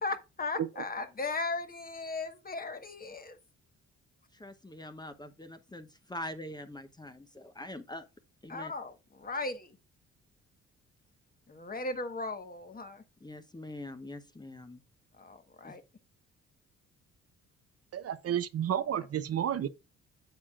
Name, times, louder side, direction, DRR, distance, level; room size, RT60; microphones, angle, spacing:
voice 1, 0.0-3.4 8.5-9.8 11.5-13.0 15.2-15.8 18.9-19.1, left 3 dB, 30° left, 1.3 m, -37 dB
voice 2, 4.3-8.0 8.4-8.7 13.2-14.8 15.6-15.8, left 1 dB, 15° left, 0.9 m, -44 dB
voice 3, 17.9-19.7, right 10 dB, 55° right, 0.7 m, -31 dB
8.9 x 7.3 x 2.4 m
cardioid pair, 90°, 30 cm